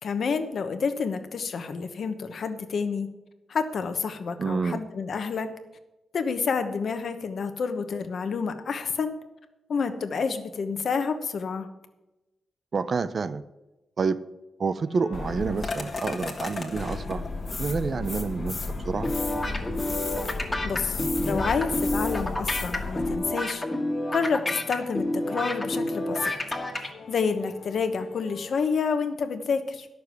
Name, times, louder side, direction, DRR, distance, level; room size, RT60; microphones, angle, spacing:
voice 1, 0.0-3.1 3.5-5.5 6.1-9.1 9.7-11.7 20.6-23.6 24.1-26.3 26.7-29.9, left 5 dB, 55° left, 8 dB, 1.0 m, -29 dB
voice 2, 4.4-4.8 12.7-13.4 14.0-14.2 14.6-17.2 17.6-19.1, right 4 dB, 40° right, 14 dB, 0.5 m, -28 dB
sound 1, 14.8-28.5, left 3 dB, 85° left, 1.9 m, -47 dB
sound 2, 15.1-23.1, left 3 dB, 30° left, 1.4 m, -33 dB
sound 3, 19.0-26.9, left 1 dB, 15° left, 1.5 m, -29 dB
11.0 x 6.7 x 8.1 m, 1.0 s
wide cardioid pair, 175°, 0 cm